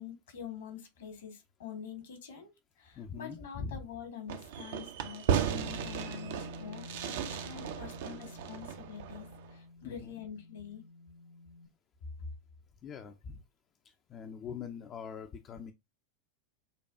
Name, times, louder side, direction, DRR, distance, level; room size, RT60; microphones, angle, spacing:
voice 1, 0.0-2.5 2.8-10.8, left 8 dB, 65° left, 1.4 m, -46 dB
voice 2, 3.0-3.8 9.8-10.1 12.8-13.4 13.8-15.7, left 6 dB, 30° left, 0.5 m, -43 dB
Fireworks, 4.3-9.5, right 8 dB, 60° right, 0.5 m, -35 dB
Bass guitar, 5.4-11.7, left 2 dB, 90° left, 0.9 m, -49 dB
6.7 x 2.4 x 2.4 m
figure-of-eight pair, 90°, 0 cm